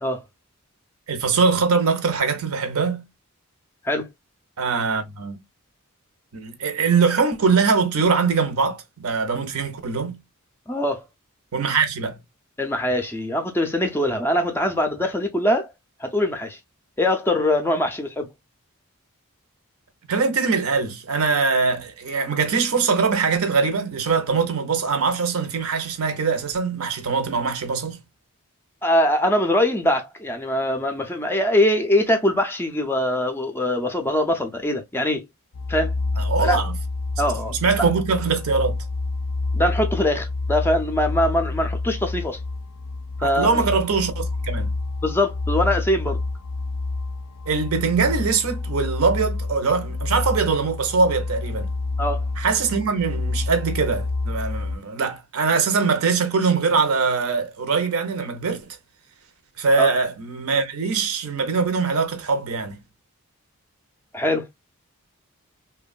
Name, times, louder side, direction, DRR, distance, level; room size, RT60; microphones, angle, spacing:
voice 1, 1.1-3.0 4.6-5.4 6.3-10.2 11.5-12.2 20.1-28.0 36.2-36.7 37.5-38.8 43.2-44.7 47.5-51.7 52.4-58.6 59.6-62.8, right 5 dB, 70° right, 0.6 m, -22 dB
voice 2, 10.7-11.0 12.6-15.7 16.0-16.6 17.0-18.3 28.8-35.2 35.7-35.9 36.4-36.6 37.2-37.9 39.5-42.4 43.2-43.6 45.0-46.2 52.0-52.2 59.8-59.9 64.1-64.5, left 1 dB, 10° left, 0.4 m, -22 dB
sound 1, 35.5-54.8, left 3 dB, 85° left, 0.4 m, -28 dB
2.9 x 2.2 x 2.4 m
head